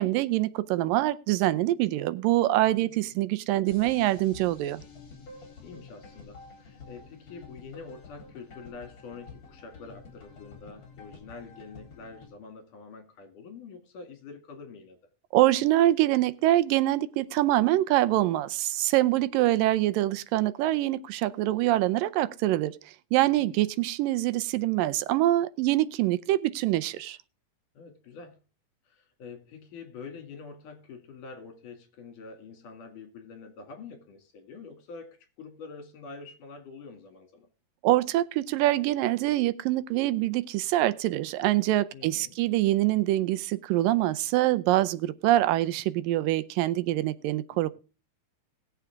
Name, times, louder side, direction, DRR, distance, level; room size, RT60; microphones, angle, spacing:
voice 1, 0.0-4.8 15.3-27.2 37.8-47.7, right 15 dB, 80° right, 2.3 m, -25 dB
voice 2, 2.6-2.9 5.6-15.0 23.3-23.7 27.8-28.4 28.9-37.5 41.9-42.4 46.9-47.7, left 4 dB, 65° left, 3.8 m, -46 dB
sound 1, 3.7-12.3, left 4 dB, 50° left, 4.8 m, -49 dB
19.5 x 7.3 x 3.5 m
omnidirectional pair, 4.0 m